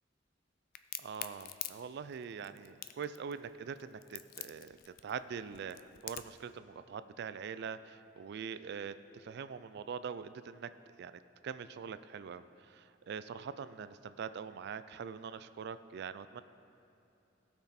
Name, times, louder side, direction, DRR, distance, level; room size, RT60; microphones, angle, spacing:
Crack, 0.7-6.4, left 13 dB, 50° left, 0.4 m, -44 dB
voice 1, 1.0-10.7 11.0-16.4, right 6 dB, 60° right, 13 dB, 0.3 m, -43 dB
17.5 x 6.1 x 4.3 m, 2.8 s
head